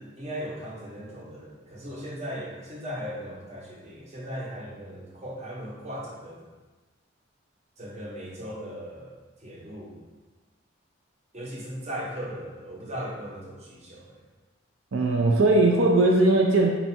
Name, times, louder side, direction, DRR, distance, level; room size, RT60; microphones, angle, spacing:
voice 1, 0.0-6.5 7.8-9.1 9.4-10.0 11.3-14.2, equal, 35° right, -4 dB, 0.8 m, -38 dB
voice 2, 14.9-16.7, right 2 dB, 80° right, 0 dB, 0.5 m, -19 dB
4.1 x 2.3 x 4.1 m, 1.2 s
head